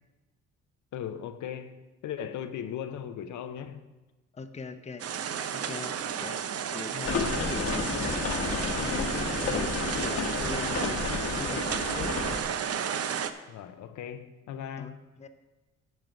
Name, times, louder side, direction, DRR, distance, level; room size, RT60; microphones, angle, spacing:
voice 1, 0.9-3.9 13.5-15.0, left 9 dB, 75° left, 0.7 m, -38 dB
voice 2, 4.3-5.1 5.5-6.4 6.7-12.2 14.8-15.3, left 4 dB, 20° left, 0.7 m, -41 dB
sound 1, 5.0-13.3, right 8 dB, 55° right, 0.6 m, -32 dB
sound 2, 7.0-12.4, left 4 dB, 55° left, 1.1 m, -31 dB
9.4 x 6.5 x 5.1 m
cardioid pair, 90°, 30 cm